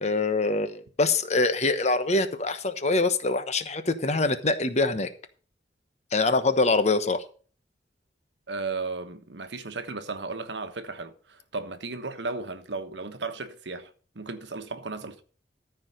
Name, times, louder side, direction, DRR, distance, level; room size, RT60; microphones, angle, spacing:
voice 1, 0.0-5.1 6.1-7.2, left 3 dB, 40° left, 1.0 m, -24 dB
voice 2, 8.5-15.2, right 3 dB, 90° right, 1.2 m, -35 dB
14.0 x 4.8 x 6.5 m
head